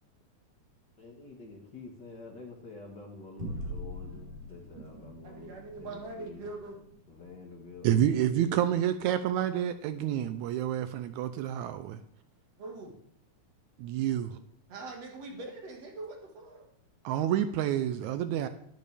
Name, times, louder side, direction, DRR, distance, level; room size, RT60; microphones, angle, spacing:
voice 1, 1.0-6.5 7.1-8.5, left 3 dB, 45° left, 0 dB, 1.7 m, -48 dB
sound 1, 3.4-8.2, equal, 20° right, 2.9 m, -43 dB
voice 2, 5.2-6.8 12.6-12.9 14.7-16.6, right 2 dB, 60° right, 1 dB, 2.8 m, -42 dB
voice 3, 7.8-12.0 13.8-14.4 17.0-18.5, right 10 dB, 80° right, 11 dB, 1.9 m, -28 dB
12.0 x 11.0 x 3.4 m, 0.70 s
omnidirectional pair, 3.4 m